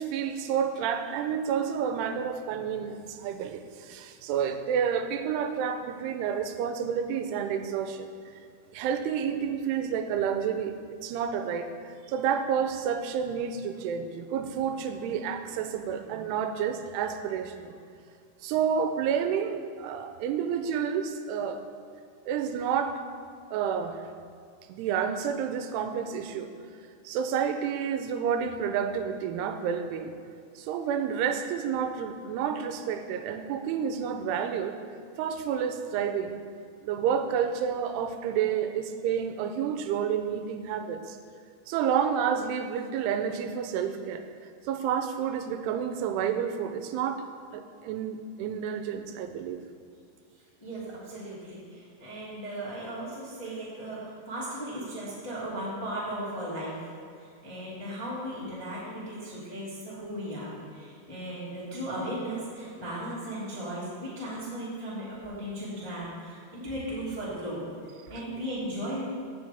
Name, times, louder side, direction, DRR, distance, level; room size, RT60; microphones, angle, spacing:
voice 1, 0.0-8.1 8.7-10.7 11.0-17.8 18.4-21.6 22.3-23.0 23.5-24.0 24.7-26.5 27.0-30.2 30.6-34.8 35.2-36.4 36.8-41.2 41.7-44.2 44.7-47.2 47.5-49.6, right 7 dB, 90° right, 8 dB, 2.7 m, -30 dB
voice 2, 50.6-69.1, right 1 dB, 15° left, -9 dB, 0.9 m, -36 dB
14.5 x 6.1 x 3.4 m, 2.3 s
omnidirectional pair, 4.6 m